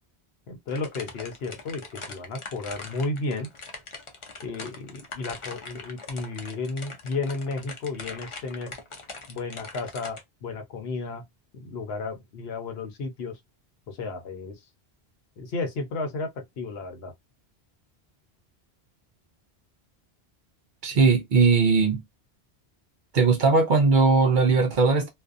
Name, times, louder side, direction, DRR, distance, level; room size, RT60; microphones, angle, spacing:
voice 1, 0.5-3.5 4.4-8.7 9.3-11.2 11.5-13.4 13.9-14.5 15.4-17.1 20.9-21.0, left 3 dB, 75° left, 0.9 m, -33 dB
sound 1, 0.7-10.2, left 3 dB, 40° left, 0.5 m, -41 dB
voice 2, 20.8-22.0 23.1-25.1, right 4 dB, 55° right, 0.7 m, -19 dB
2.5 x 2.3 x 2.4 m
omnidirectional pair, 1.1 m